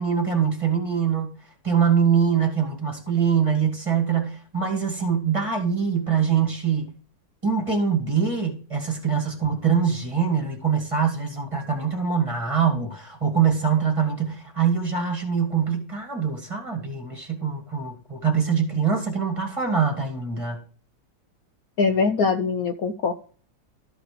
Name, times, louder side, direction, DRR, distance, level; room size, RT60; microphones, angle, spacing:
voice 1, 0.0-1.4 1.6-6.9 7.4-20.6, right 7 dB, 15° right, 2.2 m, -23 dB
voice 2, 21.8-23.1, left 4 dB, 60° left, 1.1 m, -22 dB
13.5 x 5.1 x 5.0 m
omnidirectional pair, 1.9 m